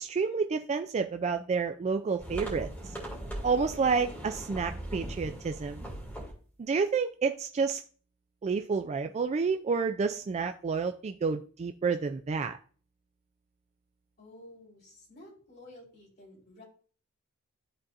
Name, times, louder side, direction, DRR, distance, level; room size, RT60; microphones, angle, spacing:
voice 1, 0.0-2.9 3.4-5.8 6.6-7.8 8.4-12.6, right 5 dB, 30° right, 7 dB, 0.3 m, -29 dB
sound 1, 2.2-6.3, right 1 dB, 10° left, 2.6 m, -39 dB
voice 2, 14.2-16.6, left 1 dB, 50° left, -4 dB, 3.7 m, -52 dB
12.0 x 4.1 x 2.5 m, 0.41 s
head